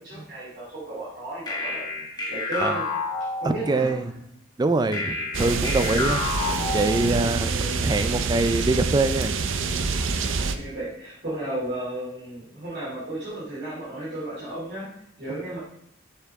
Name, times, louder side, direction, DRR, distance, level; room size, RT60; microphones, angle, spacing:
voice 1, 0.0-2.9 3.4-4.2 5.4-5.8 7.2-7.8 10.4-14.9 15.2-15.6, right 1 dB, 50° right, -8 dB, 2.9 m, -34 dB
sound 1, 1.5-4.0 4.9-7.4, left 3 dB, 20° left, 1.2 m, -30 dB
voice 2, 3.4-4.0 4.6-6.2 6.7-9.4, right 2 dB, 20° right, 10 dB, 0.3 m, -24 dB
sound 2, 5.3-10.6, right 4 dB, 65° right, 0.6 m, -26 dB
6.8 x 6.6 x 3.5 m, 0.76 s
head